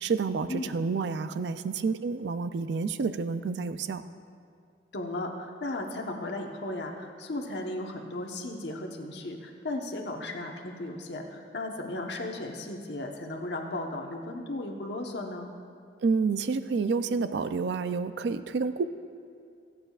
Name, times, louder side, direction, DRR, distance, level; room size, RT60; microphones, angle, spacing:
voice 1, 0.0-4.1 16.0-18.8, right 4 dB, 70° right, 12 dB, 0.4 m, -29 dB
voice 2, 4.9-15.5, left 2 dB, 65° left, 1 dB, 1.1 m, -35 dB
23.0 x 8.8 x 2.4 m, 2.3 s
head